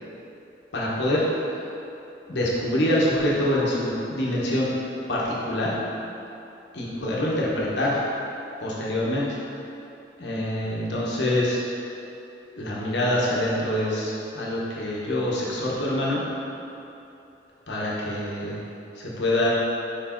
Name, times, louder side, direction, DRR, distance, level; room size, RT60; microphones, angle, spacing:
voice 1, 0.7-1.4 2.3-4.7 5.1-5.8 6.7-8.0 8.6-9.4 10.2-11.6 12.6-16.2 17.7-18.5 19.0-19.5, left 1 dB, 75° left, -5 dB, 1.1 m, -25 dB
4.8 x 4.5 x 4.4 m, 2.8 s
head